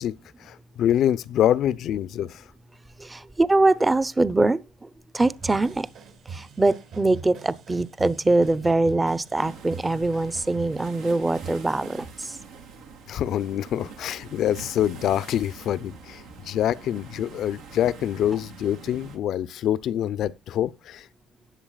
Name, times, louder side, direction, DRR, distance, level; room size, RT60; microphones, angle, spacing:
voice 1, 0.0-2.4 13.1-21.1, left 11 dB, 65° left, 0.6 m, -26 dB
voice 2, 3.0-5.9 6.3-12.4, right 2 dB, 15° right, 0.8 m, -23 dB
sound 1, 5.2-12.1, right 5 dB, 65° right, 5.2 m, -43 dB
sound 2, 9.4-19.2, right 5 dB, 90° right, 3.0 m, -44 dB
19.0 x 7.0 x 2.4 m
supercardioid pair, 85°, 0 cm